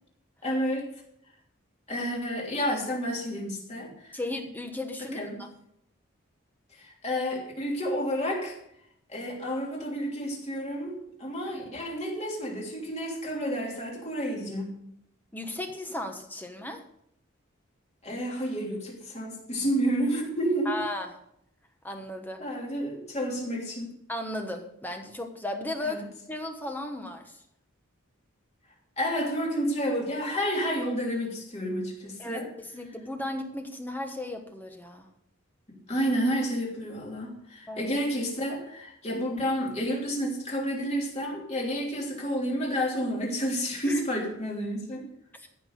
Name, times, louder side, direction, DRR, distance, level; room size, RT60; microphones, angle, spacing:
voice 1, 0.4-0.9 1.9-4.1 5.1-5.4 6.7-8.6 9.1-14.7 18.0-20.7 22.4-23.9 25.8-26.0 29.0-32.5 35.7-45.1, equal, 30° left, -1 dB, 2.9 m, -30 dB
voice 2, 4.1-5.5 11.5-11.6 15.3-16.8 20.6-21.1 21.8-22.4 24.1-26.0 26.3-27.4 32.2-35.1 37.7-37.9 43.8-44.0 45.3-45.5, left 1 dB, 10° left, 4 dB, 1.2 m, -35 dB
14.5 x 6.1 x 6.7 m, 0.73 s
head